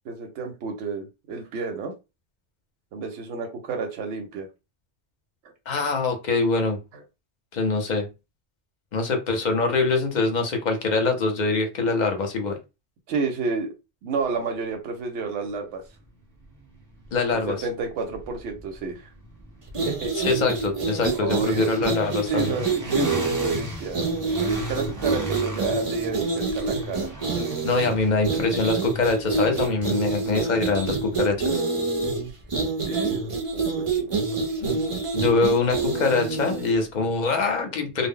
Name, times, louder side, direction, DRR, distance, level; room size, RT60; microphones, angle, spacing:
voice 1, 0.1-1.9 2.9-4.5 6.9-7.0 13.1-13.7 14.0-15.8 17.5-19.1 19.8-20.1 21.1-21.7 22.3-24.1 24.7-27.1 32.9-34.2, right 4 dB, 85° right, 3 dB, 0.9 m, -30 dB
voice 2, 5.7-6.8 7.5-8.1 8.9-12.6 17.1-17.6 20.2-22.5 27.6-31.6 34.6-34.8 35.1-38.1, left 3 dB, 50° left, 5 dB, 0.6 m, -24 dB
sound 1, 16.0-32.0, right 2 dB, 20° right, 0.8 m, -39 dB
sound 2, 19.7-36.7, right 3 dB, 45° right, 0.4 m, -27 dB
2.0 x 2.0 x 3.6 m, 0.26 s
omnidirectional pair, 1.2 m